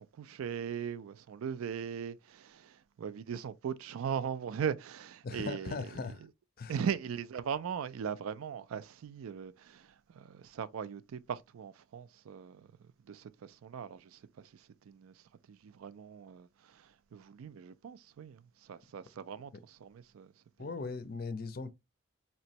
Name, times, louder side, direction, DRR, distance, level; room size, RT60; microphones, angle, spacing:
voice 1, 0.0-6.2 6.7-12.7 13.1-15.1 15.5-20.3 20.6-20.7, right 7 dB, 85° right, 0.4 m, -39 dB
voice 2, 5.2-6.2 6.6-6.7 20.6-21.7, left 4 dB, 45° left, 0.4 m, -39 dB
4.3 x 2.9 x 2.8 m
head